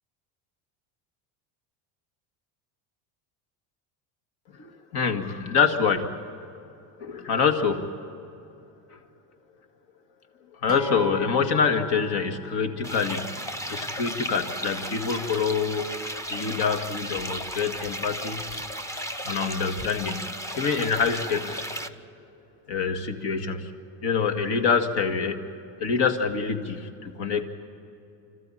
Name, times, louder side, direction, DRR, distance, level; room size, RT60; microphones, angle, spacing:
voice 1, 4.6-6.1 7.0-7.9 8.9-9.0 10.6-13.3 13.7-15.9 16.3-18.5 19.2-21.6 22.7-23.7 24.0-25.4 25.8-27.5, left 5 dB, 55° left, 6 dB, 2.2 m, -26 dB
Acoustic guitar, 10.7-15.0 15.8-15.9, left 1 dB, 25° left, 2.2 m, -40 dB
sound 1, 12.8-21.9, equal, 5° left, 0.7 m, -34 dB
26.0 x 15.0 x 8.9 m, 2.7 s
cardioid pair, 125°, 47 cm